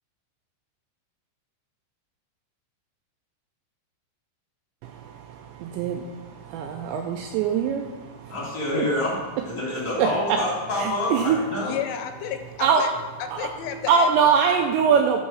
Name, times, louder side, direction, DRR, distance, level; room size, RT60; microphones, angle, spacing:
voice 1, 4.8-8.4 8.8-8.9 10.0-10.4 10.8-11.4 12.6-12.9 13.4-13.5 13.9-15.2, right 6 dB, 90° right, 3 dB, 2.5 m, -23 dB
voice 2, 8.3-11.7, left 1 dB, 25° left, -6 dB, 2.7 m, -27 dB
voice 3, 11.6-12.9 13.4-14.1, left 9 dB, 85° left, 7 dB, 3.1 m, -31 dB
8.3 x 6.5 x 6.1 m, 1.2 s
omnidirectional pair, 5.6 m